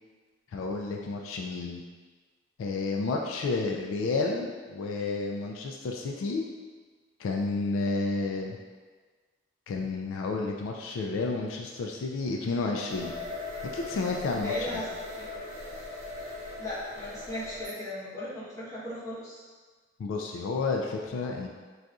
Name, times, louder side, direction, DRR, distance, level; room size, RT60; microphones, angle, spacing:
voice 1, 0.5-1.8 2.6-6.4 7.2-8.6 9.7-13.1 13.7-14.8 20.0-21.5, left 3 dB, 75° left, 2 dB, 0.3 m, -31 dB
sound 1, 12.9-17.8, left 2 dB, 80° right, 0.8 m, -39 dB
voice 2, 14.3-15.3 16.6-19.4, left 1 dB, 15° left, -10 dB, 1.0 m, -37 dB
4.0 x 2.4 x 2.3 m, 1.4 s
head